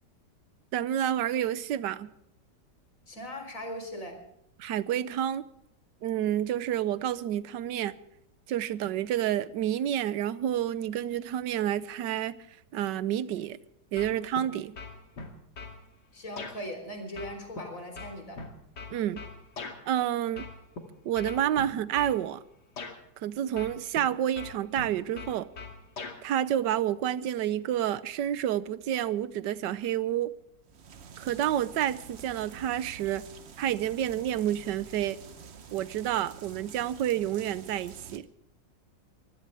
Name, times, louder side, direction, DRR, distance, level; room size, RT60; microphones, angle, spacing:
voice 1, 0.7-2.1 4.6-5.5 6.0-7.9 8.5-12.4 12.7-13.6 13.9-14.7 18.9-19.2 19.9-20.5 21.0-22.4 23.2-25.5 26.2-30.3 31.2-33.3 33.6-35.2 35.7-38.3, right 11 dB, 75° right, 1.4 m, -29 dB
voice 2, 3.1-4.2 16.1-18.4, equal, 45° left, 4.4 m, -39 dB
sound 1, 14.0-14.5 14.8-15.8 16.4-16.6 17.2-19.8 20.4-20.8 21.2-22.2 22.8-23.0 23.6-24.1 24.4-26.2, left 4 dB, 65° left, 3.0 m, -41 dB
sound 2, 30.7-38.2, right 6 dB, 45° right, 1.0 m, -48 dB
23.0 x 16.5 x 3.4 m
omnidirectional pair, 1.9 m